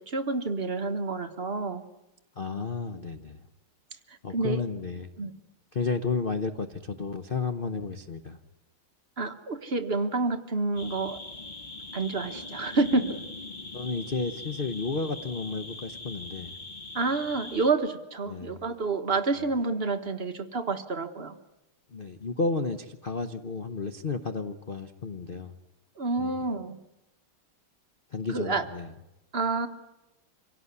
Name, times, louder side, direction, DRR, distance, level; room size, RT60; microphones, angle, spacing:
voice 1, 0.0-1.8 4.3-4.6 5.2-5.3 9.2-11.2 11.9-13.2 16.9-21.4 26.0-26.8 28.3-28.6 29.3-29.7, right 3 dB, 35° right, 7 dB, 1.2 m, -28 dB
voice 2, 2.4-3.4 4.2-5.1 5.7-8.4 13.7-16.5 18.3-18.6 21.9-25.5 26.2-26.4 28.1-28.9, left 4 dB, 55° left, 9 dB, 0.5 m, -32 dB
sound 1, 10.8-17.7, left 2 dB, 30° left, 1.0 m, -41 dB
26.0 x 17.0 x 9.6 m, 0.95 s
omnidirectional pair, 2.4 m